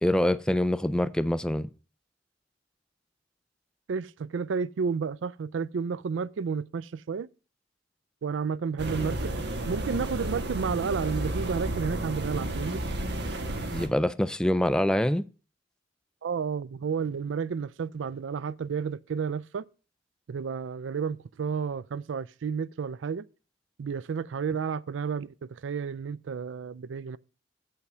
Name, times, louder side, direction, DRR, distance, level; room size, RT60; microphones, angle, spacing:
voice 1, 0.0-1.7 13.7-15.3, left 1 dB, 5° left, 0.3 m, -25 dB
voice 2, 3.9-7.3 8.2-9.4 9.7-12.8 16.2-19.7 20.3-23.3 23.8-27.2, right 6 dB, 85° right, 0.4 m, -31 dB
sound 1, 8.8-13.9, right 1 dB, 65° right, 1.4 m, -32 dB
7.9 x 5.7 x 6.2 m
head